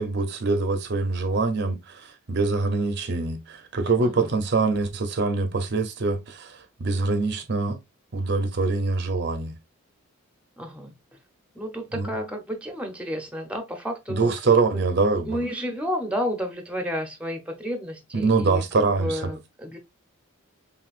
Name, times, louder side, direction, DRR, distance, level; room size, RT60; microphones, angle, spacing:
voice 1, 0.0-7.8 8.1-9.6 11.9-12.1 14.1-15.4 18.1-19.3, right 3 dB, 50° right, 0.6 m, -24 dB
voice 2, 10.6-10.9 11.6-14.3 14.7-14.9 15.3-18.6 19.0-19.8, equal, 5° right, 0.6 m, -31 dB
5.9 x 2.3 x 2.4 m
head